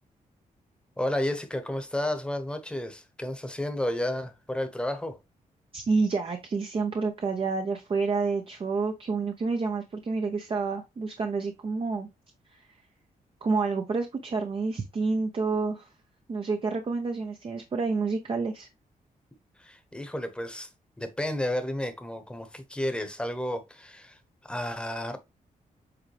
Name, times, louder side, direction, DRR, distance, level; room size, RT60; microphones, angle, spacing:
voice 1, 1.0-5.2 19.6-20.7 21.0-25.2, left 1 dB, 5° left, 1.1 m, -32 dB
voice 2, 5.7-12.1 12.5-12.6 13.4-15.9 16.3-18.7, right 4 dB, 40° right, 0.9 m, -29 dB
7.9 x 3.6 x 3.4 m
cardioid pair, 120°, 15 cm